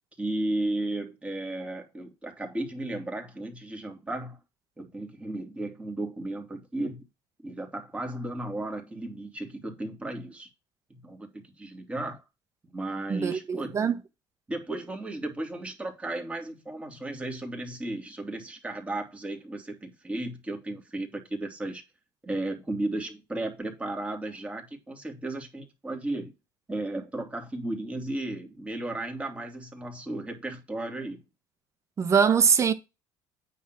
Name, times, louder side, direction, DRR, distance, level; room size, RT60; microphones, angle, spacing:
voice 1, 0.2-4.4 4.8-7.0 7.4-10.5 10.9-12.2 12.7-13.7 14.5-21.8 22.2-26.3 26.7-31.2, right 2 dB, 10° right, 2.8 m, -34 dB
voice 2, 13.1-14.0 32.0-32.7, right 6 dB, 30° right, 1.3 m, -22 dB
9.3 x 3.8 x 6.0 m
cardioid pair, 120°, 10 cm